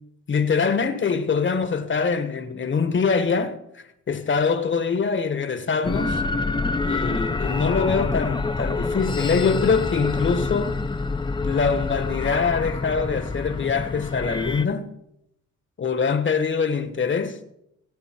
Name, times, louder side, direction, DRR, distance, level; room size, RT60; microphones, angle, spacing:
voice 1, 0.3-6.2 6.8-10.8 11.4-14.9 15.8-17.4, left 5 dB, 40° left, 1.4 m, -24 dB
sound 1, 5.8-14.6, left 3 dB, 15° left, 0.7 m, -27 dB
19.5 x 8.1 x 4.6 m
cardioid pair, 90°, 30 cm